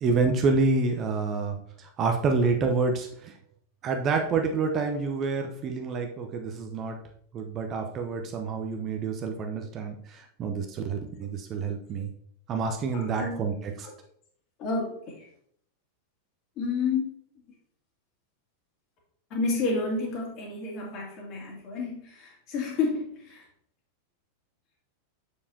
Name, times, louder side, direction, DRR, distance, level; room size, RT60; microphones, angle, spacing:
voice 1, 0.0-3.4 3.8-7.0 7.3-12.1 12.5-13.9, right 4 dB, 30° right, 4 dB, 0.8 m, -28 dB
voice 2, 12.9-13.4 14.6-15.3 16.6-17.1 19.3-23.5, left 4 dB, 40° left, -1 dB, 2.5 m, -30 dB
7.1 x 6.5 x 2.8 m, 0.65 s
figure-of-eight pair, 90°, 0 cm